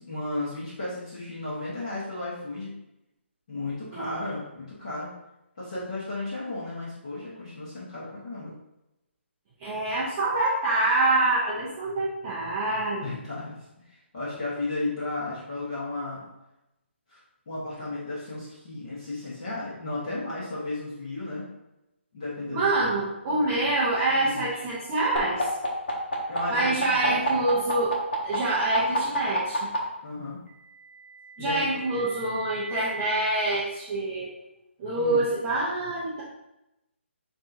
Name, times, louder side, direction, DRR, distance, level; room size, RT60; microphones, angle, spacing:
voice 1, 0.0-2.7 3.5-5.1 5.6-8.5 13.0-13.6 13.9-16.2 17.1-17.2 17.5-21.4 22.1-22.7 24.2-24.6 26.3-27.4 30.0-30.4 31.4-32.0 34.9-35.2, left 2 dB, 30° left, -9 dB, 1.3 m, -34 dB
voice 2, 9.6-13.2 22.5-25.4 26.5-28.0 28.2-29.7 31.4-34.3 34.8-36.2, right 2 dB, 10° right, -8 dB, 0.3 m, -26 dB
sound 1, 25.2-29.8 30.9-33.2, equal, 50° left, 1.3 m, -31 dB
7.1 x 2.8 x 2.6 m, 0.91 s
hypercardioid pair, 180°, 7 cm